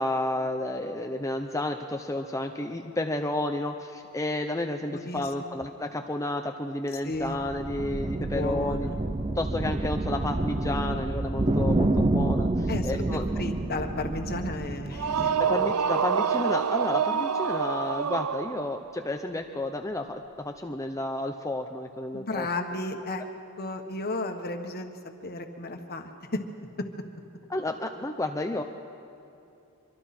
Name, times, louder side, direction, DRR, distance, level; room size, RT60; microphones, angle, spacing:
voice 1, 0.0-8.9 9.4-13.3 15.4-22.5 27.5-28.6, left 1 dB, 15° left, 5 dB, 0.7 m, -31 dB
voice 2, 4.9-5.5 7.0-7.4 8.2-9.0 12.7-15.4 22.1-23.2 23.6-26.4, left 2 dB, 45° left, 5 dB, 1.5 m, -34 dB
sound 1, 7.2-15.6, right 2 dB, 25° right, 0.6 m, -28 dB
sound 2, 14.9-18.9, right 6 dB, 85° right, 0.6 m, -27 dB
24.5 x 24.0 x 4.4 m, 2.8 s
head